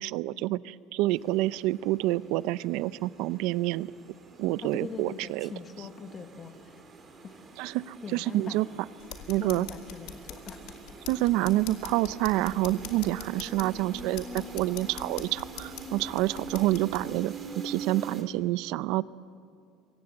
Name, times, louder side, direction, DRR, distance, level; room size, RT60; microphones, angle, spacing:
voice 1, 0.0-3.9 4.4-5.5 7.6-8.7 9.3-9.7 11.1-17.3 17.6-19.0, right 17 dB, 65° right, 17 dB, 0.6 m, -28 dB
sound 1, 1.1-18.2, right 4 dB, 25° right, 2.9 m, -44 dB
voice 2, 4.6-6.8 7.2-7.4 8.0-8.6 9.4-10.6, left 5 dB, 25° left, 8 dB, 1.5 m, -42 dB
sound 2, 9.0-17.0, left 10 dB, 65° left, 2.6 m, -44 dB
27.0 x 23.5 x 7.9 m, 2.3 s
cardioid pair, 160°, 0 cm